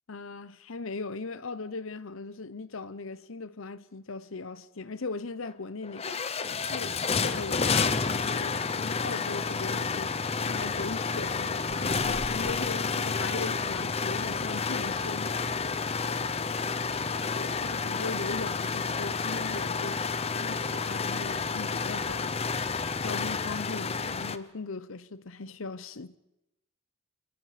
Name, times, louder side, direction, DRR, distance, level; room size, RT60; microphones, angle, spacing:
voice 1, 0.1-6.2 6.7-10.1 10.4-15.3 17.4-20.0 20.3-22.4 23.0-26.2, left 3 dB, 75° left, 0.9 m, -39 dB
sound 1, 5.5-5.6 5.8-24.4, left 5 dB, 30° left, 0.7 m, -30 dB
sound 2, 6.8-22.2, equal, 30° right, 2.9 m, -55 dB
27.5 x 23.0 x 5.1 m
head